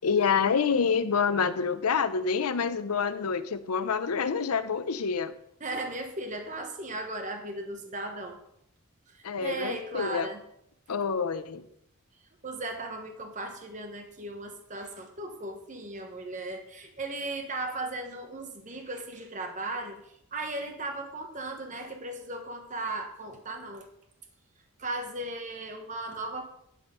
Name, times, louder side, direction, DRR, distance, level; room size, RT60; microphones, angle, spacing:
voice 1, 0.0-5.3 9.2-10.3 10.9-11.6, left 6 dB, 85° left, 12 dB, 0.6 m, -27 dB
voice 2, 5.6-8.4 9.1-10.4 12.4-23.9 24.8-26.4, right 2 dB, 35° right, 5 dB, 1.0 m, -37 dB
11.0 x 4.3 x 5.5 m, 0.75 s
head